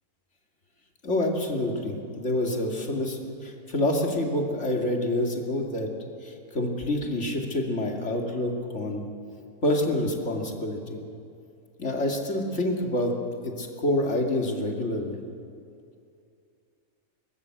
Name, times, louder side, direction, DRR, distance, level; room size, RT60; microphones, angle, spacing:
voice 1, 1.0-5.9 6.2-9.0 9.6-11.0 11.8-15.1, left 1 dB, 50° left, 2 dB, 2.8 m, -27 dB
22.5 x 19.5 x 7.8 m, 2.5 s
omnidirectional pair, 1.6 m